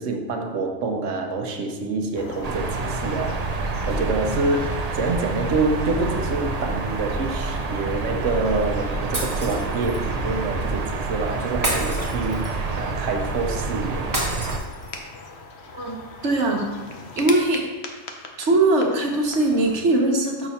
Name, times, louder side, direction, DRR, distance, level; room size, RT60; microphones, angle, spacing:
voice 1, 0.0-14.1, right 3 dB, 90° right, 4 dB, 1.2 m, -27 dB
sound 1, 2.1-19.8, left 4 dB, 65° left, 1.1 m, -39 dB
sound 2, 2.4-14.6, right 3 dB, 45° right, 0.5 m, -28 dB
Shatter, 9.1-10.0 11.6-12.7 14.1-15.1, right 1 dB, 15° right, 1.5 m, -29 dB
voice 2, 16.2-16.6 17.2-17.6 18.4-20.5, right 2 dB, 75° right, 1 dB, 1.4 m, -20 dB
6.8 x 6.1 x 4.2 m, 1.2 s
omnidirectional pair, 1.2 m